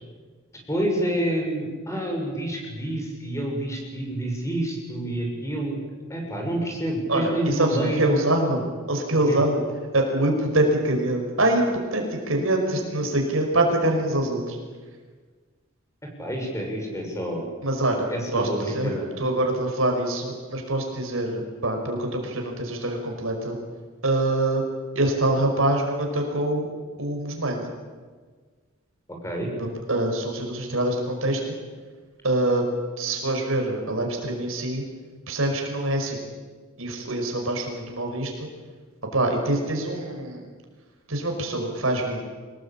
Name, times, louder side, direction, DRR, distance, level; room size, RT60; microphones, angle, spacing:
voice 1, 0.7-5.8 6.1-8.2 9.3-9.4 16.2-17.4 17.9-19.1 29.2-29.5, right 1 dB, 15° left, 1 dB, 6.5 m, -28 dB
voice 2, 7.1-8.6 8.9-9.6 9.9-14.6 17.6-23.6 24.0-24.6 25.0-26.7 27.0-27.7 29.6-31.4 32.2-32.6 33.0-34.8 35.3-36.2 36.8-38.5 39.1-40.4 41.1-42.2, right 1 dB, 70° right, 2 dB, 5.2 m, -24 dB
25.0 x 20.0 x 8.7 m, 1.5 s
head